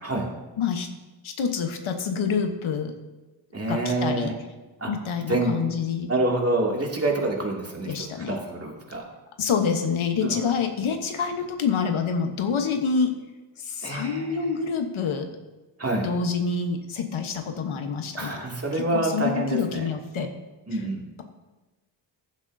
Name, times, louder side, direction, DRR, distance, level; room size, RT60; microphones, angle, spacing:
voice 1, 0.6-0.9 1.2-2.9 3.7-4.3 4.9-6.1 7.9-8.4 9.4-13.1 13.6-15.3 16.0-18.4 18.7-20.3 20.7-20.8, left 5 dB, 85° left, 5 dB, 1.2 m, -27 dB
voice 2, 3.5-4.4 4.8-4.9 5.3-5.6 6.1-9.0 10.2-10.5 13.8-14.4 15.8-16.1 18.2-19.9 20.7-21.0, right 2 dB, 30° right, -1 dB, 2.4 m, -27 dB
14.0 x 10.5 x 2.7 m, 1.2 s
cardioid pair, 85°, 47 cm